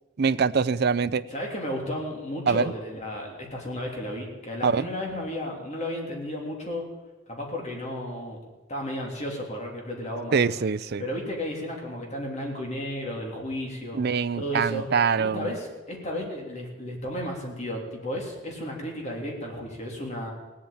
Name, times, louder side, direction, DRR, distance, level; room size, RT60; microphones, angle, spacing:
voice 1, 0.2-1.2 2.5-2.7 4.6-4.9 10.3-11.0 13.9-15.5, right 5 dB, 55° right, 14 dB, 0.5 m, -24 dB
voice 2, 1.3-6.9 7.3-8.4 8.7-10.5 11.0-14.0 14.3-14.8 15.2-20.3, left 1 dB, 35° left, -1 dB, 3.3 m, -33 dB
18.0 x 8.7 x 8.8 m, 1.2 s
head